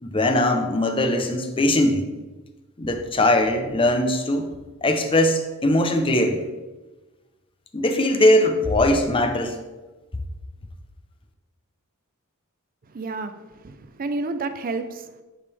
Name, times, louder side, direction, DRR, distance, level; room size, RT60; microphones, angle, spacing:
voice 1, 0.0-2.1 2.8-4.5 4.8-6.4 7.7-9.6, left 1 dB, 25° left, 6 dB, 0.7 m, -20 dB
voice 2, 12.9-15.1, right 3 dB, 40° right, 9 dB, 0.5 m, -30 dB
10.0 x 5.1 x 3.4 m, 1.2 s
head